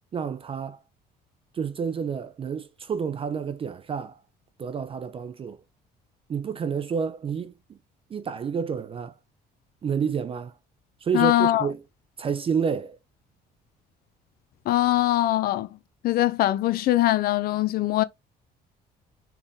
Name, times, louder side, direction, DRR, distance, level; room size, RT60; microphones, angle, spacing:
voice 1, 0.1-0.8 1.5-4.2 4.6-5.6 6.3-7.8 8.1-9.1 9.8-10.5 11.0-11.8 12.2-13.0, right 6 dB, 35° right, 0.5 m, -29 dB
voice 2, 11.1-11.7 14.7-15.7 16.0-18.0, left 15 dB, 60° left, 0.5 m, -22 dB
4.3 x 3.3 x 3.5 m
cardioid pair, 110°, 17 cm